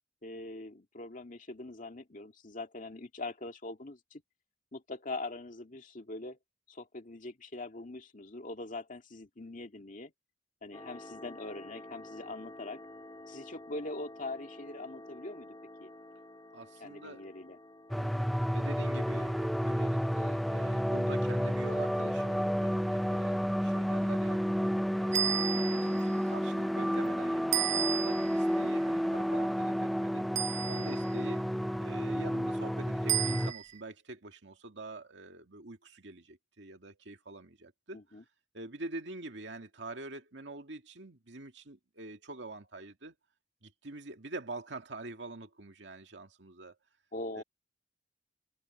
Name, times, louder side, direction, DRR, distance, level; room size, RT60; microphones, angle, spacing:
voice 1, 0.2-4.2 4.7-6.4 6.7-10.1 10.6-12.8 13.3-15.9 16.8-17.6 37.9-38.2 47.1-47.4, left 2 dB, 45° left, 2.2 m, -42 dB
sound 1, 10.7-21.5, left 1 dB, 25° left, 3.1 m, -51 dB
voice 2, 16.5-17.3 18.0-24.4 24.9-30.2 30.7-31.5 31.8-38.0 38.5-43.2 43.6-46.8 47.4-47.5, right 2 dB, 75° right, 2.3 m, -46 dB
sound 2, 17.9-33.5, equal, ahead, 0.3 m, -31 dB
sound 3, 25.1-26.0 27.5-28.4 30.4-31.1 33.1-33.8, right 10 dB, 40° right, 0.8 m, -32 dB
head